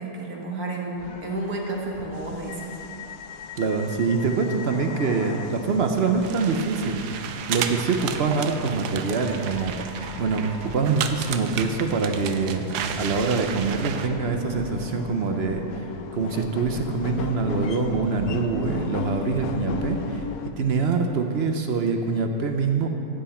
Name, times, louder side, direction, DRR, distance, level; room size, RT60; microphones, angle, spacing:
voice 1, 0.0-2.8, right 2 dB, 70° right, -1 dB, 1.9 m, -31 dB
sound 1, 1.0-20.5, left 7 dB, 75° left, 1.1 m, -37 dB
voice 2, 3.6-9.8 10.2-15.9 16.1-20.2 20.6-22.9, right 4 dB, 55° right, 5 dB, 0.8 m, -25 dB
sound 2, 6.2-14.1, right 8 dB, 90° right, 1.2 m, -33 dB
15.0 x 8.1 x 4.3 m, 2.7 s
omnidirectional pair, 1.7 m